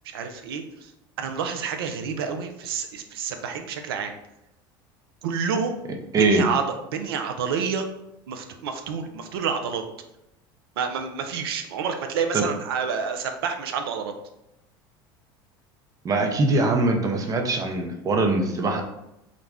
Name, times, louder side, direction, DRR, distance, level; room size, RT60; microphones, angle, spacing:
voice 1, 0.0-0.9 1.2-4.1 5.2-5.8 6.2-6.6 6.9-7.9 8.3-9.8 10.8-14.1, right 6 dB, 85° right, 5 dB, 0.4 m, -28 dB
voice 2, 6.1-6.4 12.3-12.4 16.0-18.8, right 2 dB, 30° right, 4 dB, 0.5 m, -22 dB
2.5 x 2.1 x 3.3 m, 0.87 s
hypercardioid pair, 90°, 12 cm